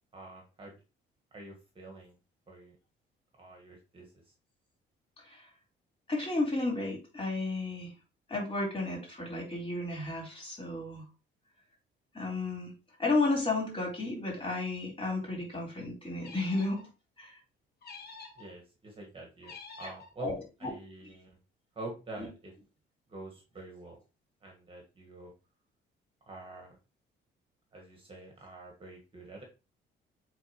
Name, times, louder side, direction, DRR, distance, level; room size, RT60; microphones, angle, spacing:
voice 1, 0.1-0.7 1.3-2.1 2.5-2.8 3.4-4.1 18.4-20.3 20.6-21.4 21.7-22.5 23.1-24.0 24.4-25.3 26.3-26.8 27.7-29.4, right 2 dB, 25° right, 0 dB, 1.6 m, -46 dB
voice 2, 5.2-5.5 6.1-7.9 8.3-11.0 12.1-12.7 13.0-16.9 17.2-17.4 19.8-20.7 21.0-21.1 22.2-22.3, left 2 dB, 25° left, -1 dB, 4.0 m, -33 dB
sound 1, 16.2-16.9 17.8-18.5 19.4-20.1, left 4 dB, 55° left, 1.7 m, -48 dB
8.1 x 3.8 x 3.1 m, 0.30 s
cardioid pair, 105°, 19 cm